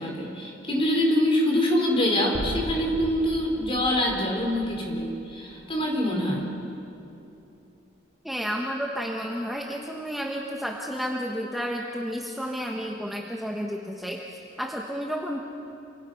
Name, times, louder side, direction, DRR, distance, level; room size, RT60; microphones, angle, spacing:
voice 1, 0.0-6.5, left 1 dB, 30° left, 0 dB, 4.5 m, -25 dB
sound 1, 2.3-6.5, equal, 45° right, 2.2 m, -38 dB
voice 2, 8.2-14.2 14.6-15.4, equal, ahead, 0 dB, 1.2 m, -31 dB
28.0 x 26.0 x 5.7 m, 2.9 s
head